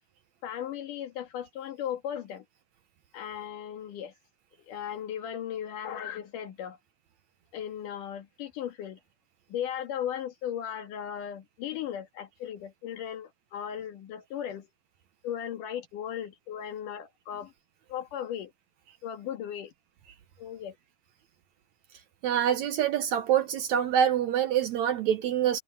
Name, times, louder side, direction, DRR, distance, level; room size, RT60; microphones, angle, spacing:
voice 1, 0.4-2.4 3.1-4.1 4.6-6.8 7.5-9.0 9.5-14.7 15.2-17.5 17.9-18.5 19.0-19.7 20.4-20.8, left 9 dB, 70° left, 3.1 m, -36 dB
voice 2, 22.2-25.6, right 9 dB, 70° right, 2.0 m, -25 dB
omnidirectional pair, 3.9 m